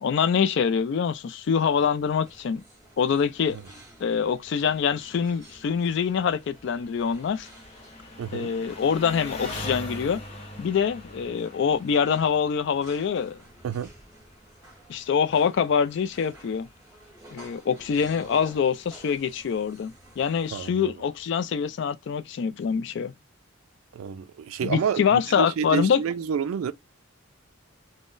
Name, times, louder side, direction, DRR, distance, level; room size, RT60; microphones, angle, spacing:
voice 1, 0.0-2.6 3.0-3.6 4.0-7.5 8.3-10.2 10.6-13.4 14.9-16.7 17.3-23.1 24.6-26.0, left 6 dB, 55° left, 0.3 m, -25 dB
sound 1, 1.6-20.7, right 1 dB, 15° right, 1.5 m, -52 dB
Engine, 3.3-21.2, left 1 dB, 30° left, 0.7 m, -45 dB
voice 2, 8.2-8.5 13.6-13.9 20.5-20.9 23.9-26.7, right 7 dB, 80° right, 0.3 m, -29 dB
3.7 x 2.0 x 2.4 m
head